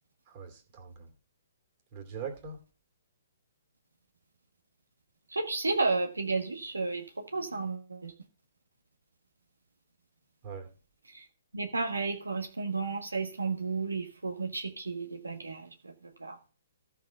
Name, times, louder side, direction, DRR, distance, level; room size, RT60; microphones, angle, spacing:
voice 1, 0.3-1.1 1.9-2.6 10.4-10.7, right 6 dB, 35° right, 5 dB, 2.6 m, -41 dB
voice 2, 5.3-8.1 11.1-11.2 11.5-15.9 16.2-16.3, right 3 dB, 85° right, 3 dB, 1.6 m, -32 dB
14.0 x 4.8 x 5.7 m, 0.38 s
figure-of-eight pair, 130°, 0 cm